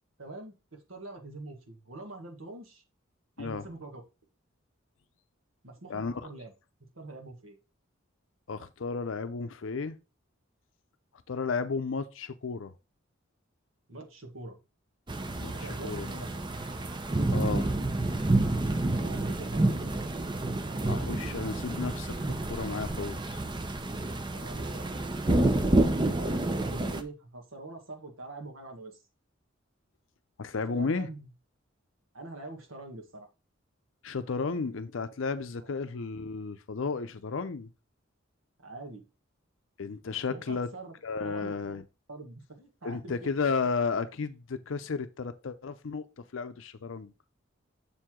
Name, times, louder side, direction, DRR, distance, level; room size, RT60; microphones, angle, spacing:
voice 1, 0.2-2.8 3.4-4.0 5.6-6.5 7.0-7.6 13.9-14.6 15.5-16.4 18.9-20.0 24.3-24.8 26.1-29.0 30.5-31.3 32.1-33.3 35.6-35.7 38.6-39.0 40.3-40.9 41.2-41.6 42.1-43.1, right 2 dB, 85° right, 1.6 m, -44 dB
voice 2, 5.9-6.3 8.5-10.0 11.3-12.7 15.4-16.1 17.3-17.7 20.8-23.4 30.4-31.1 34.0-37.7 39.8-40.7 41.0-41.8 42.8-47.1, left 4 dB, 65° left, 0.6 m, -33 dB
sound 1, 15.1-27.0, right 2 dB, 25° right, 0.6 m, -29 dB
6.9 x 4.7 x 3.6 m
head